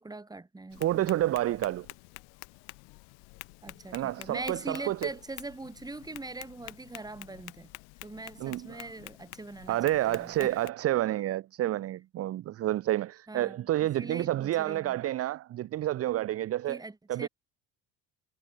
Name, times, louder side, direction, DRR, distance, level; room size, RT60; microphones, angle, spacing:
voice 1, 0.0-1.3 3.6-7.7 8.0-9.8 10.1-10.5 13.3-13.7 14.0-15.0 16.7-17.3, right 2 dB, 10° right, 3.3 m, -42 dB
Tap, 0.7-10.7, left 32 dB, 80° left, 1.1 m, -49 dB
voice 2, 0.8-1.9 3.9-5.1 8.4-8.9 9.7-16.8 17.1-17.3, right 14 dB, 40° right, 0.7 m, -29 dB
cardioid pair, 130°, 38 cm